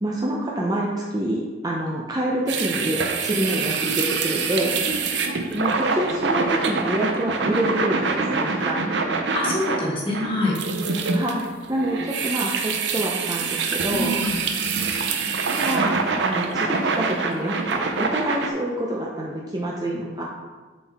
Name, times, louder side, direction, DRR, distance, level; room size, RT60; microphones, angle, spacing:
voice 1, 0.0-4.8 5.5-9.0 11.1-14.2 15.5-20.2, right 1 dB, 20° right, -3 dB, 0.6 m, -27 dB
sound 1, 2.5-18.5, right 4 dB, 85° right, 0.6 m, -25 dB
voice 2, 9.3-10.5 13.9-14.4, left 1 dB, 30° left, -4 dB, 1.6 m, -25 dB
7.1 x 4.4 x 3.5 m, 1.4 s
head